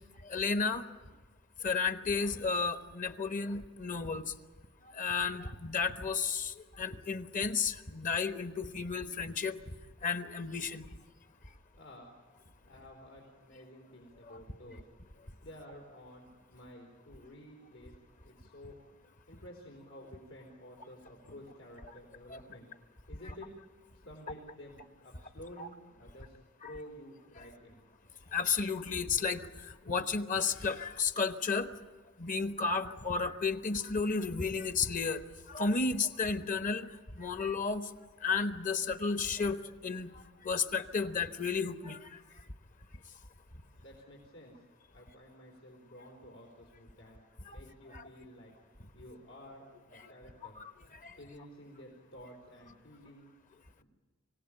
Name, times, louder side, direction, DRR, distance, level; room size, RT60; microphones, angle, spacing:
voice 1, 0.2-0.8 1.6-4.2 5.0-9.6 10.0-10.9 14.3-14.4 22.3-22.4 25.6-25.7 26.6-26.7 28.3-29.5 29.9-31.7 32.2-35.2 35.5-36.9 37.2-37.8 38.2-40.1 40.4-42.0 47.9-48.0 50.6-50.7 51.0-51.1, left 5 dB, 40° left, 9 dB, 1.0 m, -32 dB
voice 2, 11.8-12.1 12.6-14.8 15.4-17.9 18.2-18.8 19.3-22.7 23.1-23.5 23.9-26.4 26.6-27.8 43.8-44.6 44.8-47.2 47.5-48.5 48.9-53.3 53.8-53.9, equal, 85° left, -2 dB, 4.4 m, -52 dB
26.0 x 17.5 x 8.9 m, 1.3 s
head